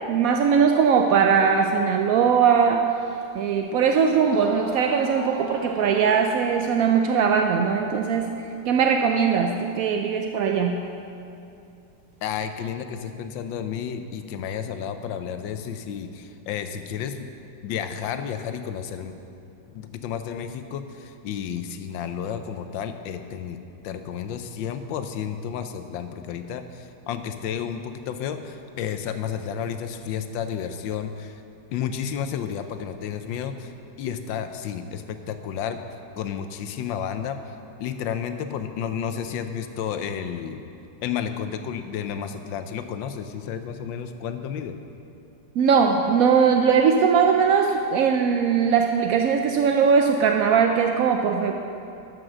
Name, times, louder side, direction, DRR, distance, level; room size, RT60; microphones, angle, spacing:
voice 1, 0.1-2.9 3.3-8.3 8.6-10.8 45.6-51.5, right 6 dB, 75° right, 3 dB, 0.8 m, -20 dB
sound 1, 3.2-3.3 4.0-4.1 4.3-6.8, right 2 dB, 50° right, 2.0 m, -39 dB
voice 2, 12.2-17.3 17.6-19.1 19.7-23.6 23.8-31.4 31.7-33.7 34.0-35.8 36.2-37.5 37.8-40.6 41.0-44.8, left 8 dB, 90° left, 8 dB, 1.4 m, -31 dB
12.5 x 6.0 x 6.3 m, 2.7 s
omnidirectional pair, 2.0 m